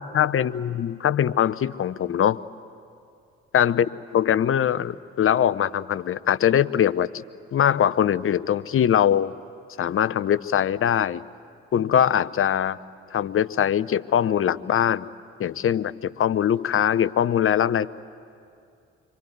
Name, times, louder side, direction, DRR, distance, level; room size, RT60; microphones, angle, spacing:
voice 1, 0.0-2.4 3.5-7.2 7.5-9.3 9.8-11.2 11.7-12.8 13.1-15.1 15.4-17.9, left 9 dB, 45° left, 16 dB, 0.8 m, -22 dB
25.0 x 24.5 x 9.4 m, 2.4 s
hypercardioid pair, 50°, 32 cm